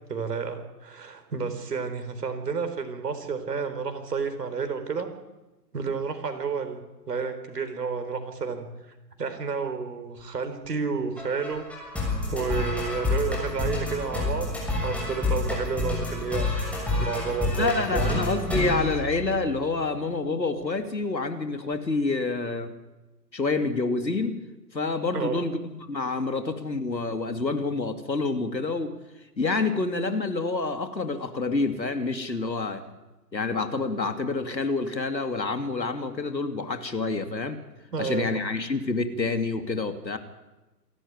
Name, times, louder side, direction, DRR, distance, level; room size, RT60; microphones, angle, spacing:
voice 1, 0.1-5.1 5.7-6.8 7.1-8.7 9.2-11.7 12.3-14.5 14.8-16.5 17.0-18.2 25.1-25.4 37.9-38.2, right 5 dB, 70° right, 8 dB, 4.2 m, -30 dB
sound 1, 11.2-19.7, left 2 dB, 5° left, 6.9 m, -29 dB
voice 2, 17.6-22.7 23.3-24.4 24.7-28.9 29.4-32.8 33.3-37.6 38.0-40.2, left 3 dB, 85° left, 8 dB, 2.8 m, -28 dB
27.5 x 13.5 x 9.8 m, 1.1 s
figure-of-eight pair, 120°, 50 cm